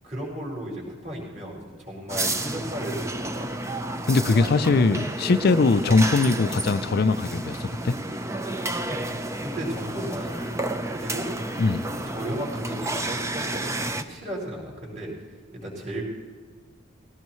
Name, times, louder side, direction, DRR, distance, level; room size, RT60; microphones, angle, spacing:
voice 1, 0.0-3.5 4.3-5.3 8.9-9.0 9.4-11.3 12.0-15.1 15.5-16.0, right 1 dB, 40° right, -3 dB, 5.0 m, -35 dB
sound 1, 2.1-14.0, right 1 dB, 15° right, 0.6 m, -31 dB
voice 2, 4.1-7.9 11.6-11.9, left 3 dB, 50° left, 11 dB, 0.5 m, -21 dB
19.5 x 17.0 x 3.1 m, 1.5 s
head